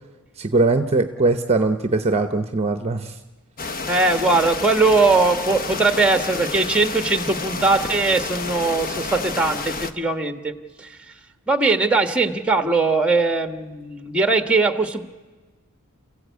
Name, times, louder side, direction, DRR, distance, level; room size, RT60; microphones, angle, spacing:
voice 1, 0.4-3.2, right 3 dB, 30° right, 8 dB, 0.8 m, -21 dB
sound 1, 3.6-9.9, left 4 dB, 40° left, 1.1 m, -30 dB
voice 2, 3.9-10.5 10.8-11.0 11.5-15.0, right 3 dB, 5° right, 8 dB, 1.4 m, -20 dB
29.0 x 16.0 x 8.2 m, 1.3 s
head